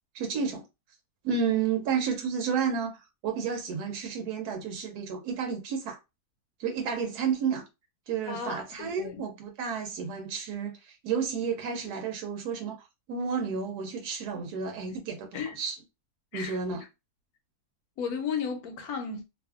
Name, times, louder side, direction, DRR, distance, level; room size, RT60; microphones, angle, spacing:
voice 1, 0.1-0.6 1.2-6.0 6.6-7.6 8.1-15.7 16.3-16.8, right 6 dB, 80° right, 1.1 m, -31 dB
voice 2, 8.3-9.2 14.9-15.0 15.3-15.6 16.3-16.6 18.0-19.3, left 6 dB, 75° left, 1.1 m, -34 dB
2.6 x 2.4 x 2.3 m
omnidirectional pair, 1.7 m